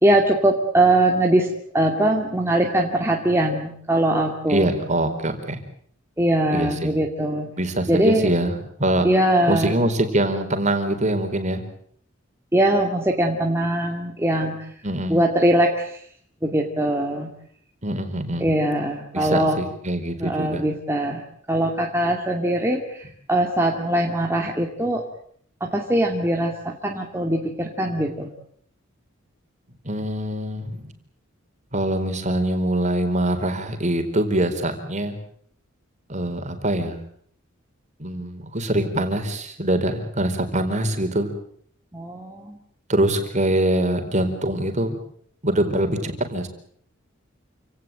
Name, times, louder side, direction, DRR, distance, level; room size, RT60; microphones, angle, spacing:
voice 1, 0.0-4.7 6.2-7.5 7.9-8.3 9.0-9.7 12.5-14.7 15.1-16.0 16.4-17.3 18.4-19.6 20.2-21.2 21.5-25.0 25.6-28.3 41.9-42.6, right 1 dB, 10° right, 0 dB, 2.5 m, -21 dB
voice 2, 4.5-5.6 6.5-7.0 7.6-9.1 9.5-11.6 14.8-15.2 17.8-18.5 19.1-20.6 29.8-30.9 31.7-35.2 36.1-37.0 38.0-41.3 42.9-44.9 45.4-46.5, right 1 dB, 35° right, 6 dB, 4.4 m, -23 dB
28.5 x 18.0 x 9.1 m, 0.63 s
head